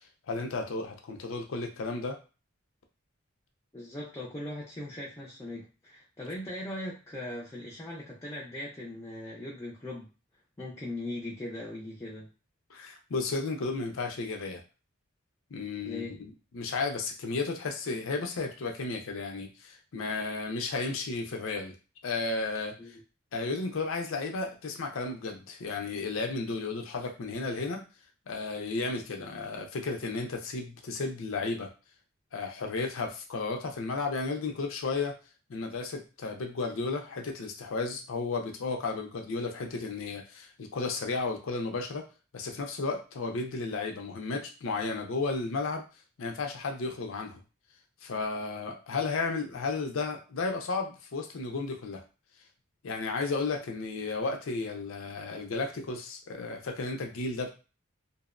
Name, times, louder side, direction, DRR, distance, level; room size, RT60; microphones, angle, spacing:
voice 1, 0.3-2.2 12.7-14.6 15.5-16.1 16.5-21.8 22.0-23.0 23.3-27.8 28.3-31.7 32.3-35.1 35.5-42.0 42.3-45.8 46.2-47.4 48.0-52.0 52.8-57.5, left 3 dB, 75° left, 4 dB, 0.5 m, -33 dB
voice 2, 3.7-10.1 10.6-12.3 15.8-16.1 22.8-22.9, left 1 dB, 15° left, -4 dB, 0.4 m, -39 dB
2.5 x 2.0 x 2.4 m, 0.34 s
head